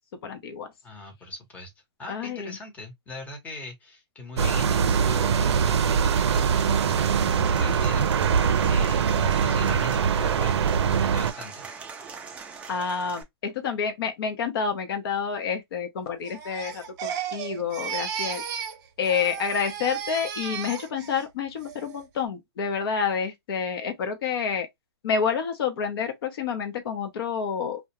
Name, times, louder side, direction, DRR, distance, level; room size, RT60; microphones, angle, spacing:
voice 1, 0.2-0.7 2.1-2.5 12.7-18.4 19.0-24.7 25.0-27.8, left 6 dB, 60° left, 0.7 m, -29 dB
voice 2, 0.8-1.7 2.0-8.4 8.6-10.7 11.0-11.7, left 3 dB, 10° left, 0.8 m, -41 dB
sound 1, 4.4-11.3, right 7 dB, 80° right, 0.4 m, -22 dB
Applause / Crowd, 6.1-13.2, right 5 dB, 10° right, 0.3 m, -41 dB
Crying sobbing, 16.2-18.8 19.0-21.2 21.6-22.0, right 8 dB, 45° right, 0.7 m, -34 dB
2.4 x 2.1 x 2.8 m
hypercardioid pair, 145°, 14 cm